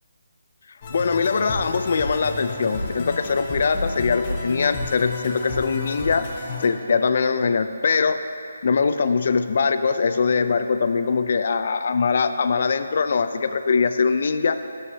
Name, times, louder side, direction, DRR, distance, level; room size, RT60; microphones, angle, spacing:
sound 1, 0.8-6.7, left 2 dB, 25° left, 0.9 m, -31 dB
voice 1, 0.9-6.3 6.6-8.2 8.6-14.6, left 5 dB, 45° left, 10 dB, 0.4 m, -22 dB
11.0 x 7.7 x 2.8 m, 2.4 s
hypercardioid pair, 170°, 0 cm